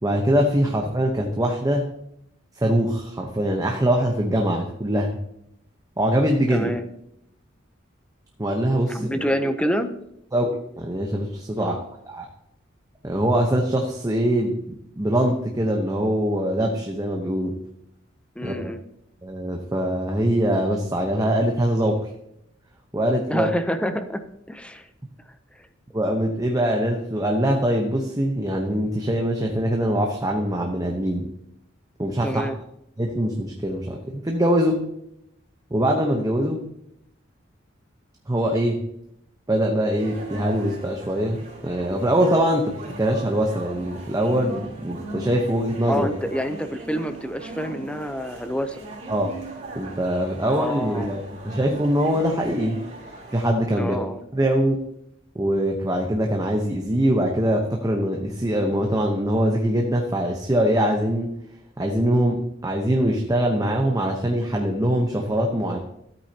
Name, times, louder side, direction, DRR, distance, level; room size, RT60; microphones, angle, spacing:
voice 1, 0.0-1.9 2.6-5.2 6.0-6.7 8.4-9.3 10.3-12.3 13.0-17.6 18.4-18.7 19.2-22.0 22.9-23.5 25.9-31.3 32.0-32.5 33.0-34.8 35.7-36.6 38.3-38.8 39.5-46.1 49.1-49.3 49.7-52.8 53.3-54.0 54.3-54.8 55.3-61.3 61.8-65.8, right 1 dB, 20° right, 1 dB, 0.9 m, -23 dB
voice 2, 6.5-6.8 8.9-9.9 11.6-11.8 18.4-18.8 23.3-24.9 32.2-32.5 45.9-48.8 50.5-51.1 53.8-54.2, equal, 5° left, 9 dB, 0.6 m, -27 dB
sound 1, 40.0-53.4, right 2 dB, 35° right, 2.7 m, -39 dB
13.5 x 8.5 x 2.9 m, 0.78 s
head